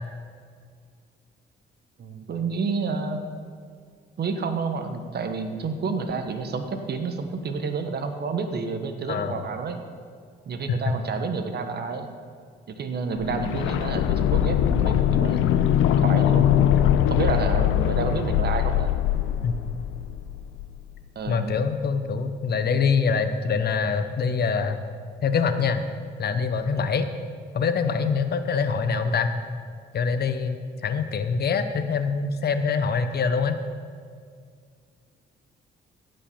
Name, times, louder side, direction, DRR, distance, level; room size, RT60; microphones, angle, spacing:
voice 1, 2.0-3.2 4.2-9.8 10.5-12.1 12.7-15.5 16.0-16.5 17.1-18.9 21.1-21.6, right 4 dB, 55° right, 6 dB, 1.2 m, -29 dB
voice 2, 9.1-9.4 19.4-19.5 21.3-24.8 25.2-25.8 26.2-27.1 27.5-29.3 29.9-33.6, left 5 dB, 55° left, 9 dB, 0.9 m, -24 dB
sound 1, 13.2-21.0 21.3-21.4, left 11 dB, 90° left, 0.5 m, -22 dB
15.5 x 5.5 x 7.1 m, 2.1 s
cardioid pair, 90°, 20 cm